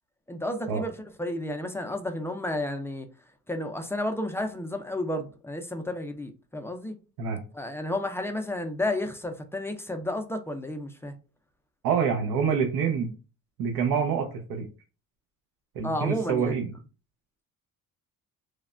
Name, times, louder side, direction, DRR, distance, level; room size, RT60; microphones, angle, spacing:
voice 1, 0.3-0.9 1.2-3.1 3.5-6.9 7.5-11.1 15.8-16.5, left 1 dB, 10° left, 0.3 m, -31 dB
voice 2, 11.8-13.1 13.6-14.6 15.8-16.7, right 6 dB, 90° right, 0.6 m, -26 dB
3.2 x 2.1 x 2.4 m
cardioid pair, 125°, 34 cm